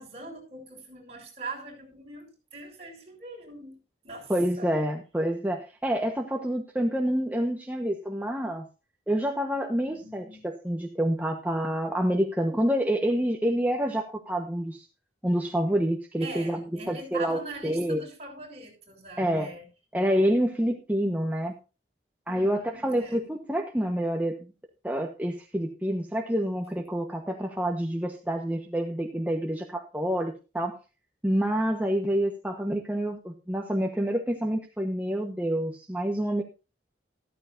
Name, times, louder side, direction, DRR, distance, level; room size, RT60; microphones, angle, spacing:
voice 1, 0.0-3.8 4.0-4.7 9.8-10.4 16.2-19.6 22.3-23.2, right 3 dB, 35° right, 0 dB, 6.5 m, -42 dB
voice 2, 4.3-8.7 9.1-14.9 15.2-18.0 19.2-19.5 19.9-21.5 22.3-24.4 24.8-30.8 31.2-36.4, equal, 10° right, 2 dB, 1.2 m, -27 dB
14.5 x 13.5 x 2.7 m, 0.32 s
head